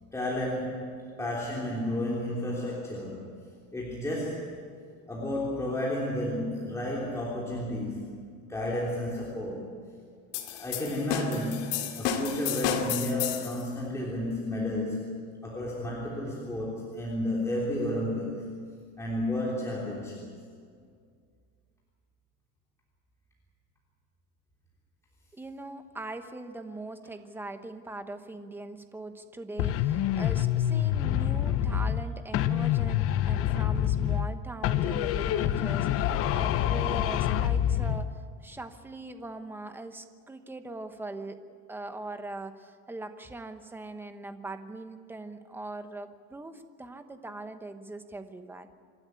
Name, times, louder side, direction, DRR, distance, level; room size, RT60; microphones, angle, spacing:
voice 1, 0.1-3.3 3.7-4.5 5.1-8.1 8.4-9.7 10.4-18.6 19.0-20.2, left 1 dB, 10° left, -5 dB, 3.4 m, -32 dB
sound 1, 10.3-13.6, left 8 dB, 85° left, 2.4 m, -31 dB
voice 2, 25.3-41.4 41.7-48.7, right 2 dB, 5° right, 8 dB, 1.1 m, -41 dB
sound 2, 29.6-32.1 32.3-34.3 34.6-38.1, left 11 dB, 45° left, 0.8 m, -26 dB
27.0 x 12.5 x 9.6 m, 2.1 s
cardioid pair, 155°, 32 cm